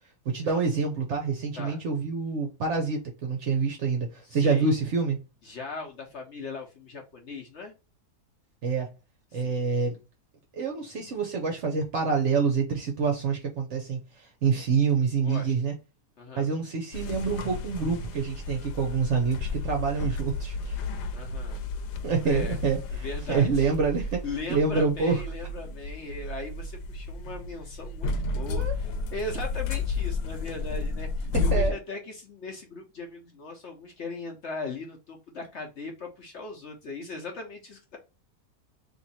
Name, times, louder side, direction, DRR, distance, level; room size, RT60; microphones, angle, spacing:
voice 1, 0.3-5.2 8.6-8.9 9.3-10.0 10.5-15.7 16.3-20.8 22.0-22.8 23.3-24.2 24.5-25.2 28.5-28.7 31.5-31.8, right 5 dB, 60° right, 0.8 m, -27 dB
voice 2, 4.2-4.7 5.4-7.7 9.3-9.6 15.2-15.5 16.2-16.5 21.1-21.6 22.2-22.6 22.9-23.7 24.0-38.0, left 3 dB, 55° left, 0.9 m, -39 dB
sound 1, 16.9-31.7, left 3 dB, 90° left, 1.2 m, -32 dB
3.0 x 2.7 x 4.0 m
omnidirectional pair, 1.7 m